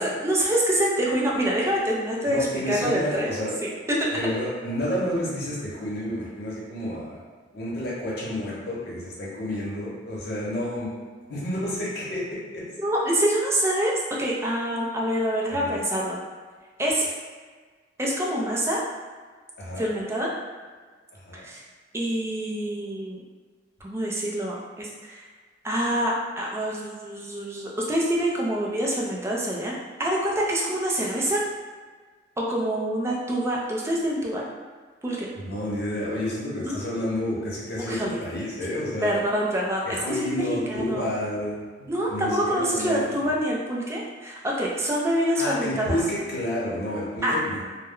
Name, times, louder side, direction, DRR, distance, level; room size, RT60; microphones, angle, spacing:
voice 1, 0.0-3.3 3.6-4.2 12.8-16.2 16.8-17.1 18.0-18.8 19.8-20.3 21.3-21.6 21.9-23.2 23.8-25.2 25.6-31.4 32.4-34.5 35.0-35.3 36.6-36.8 37.8-38.2 39.0-41.1 41.9-46.0 47.2-47.4, right 1 dB, 15° right, -4 dB, 0.4 m, -26 dB
voice 2, 2.3-3.5 4.1-7.2 7.5-10.9 11.2-12.2 12.5-12.6 15.5-15.7 19.6-19.9 21.2-21.4 35.3-39.2 39.8-41.6 42.1-43.3 45.4-47.7, left 1 dB, 60° left, -7 dB, 0.9 m, -30 dB
2.2 x 2.1 x 3.5 m, 1.5 s
head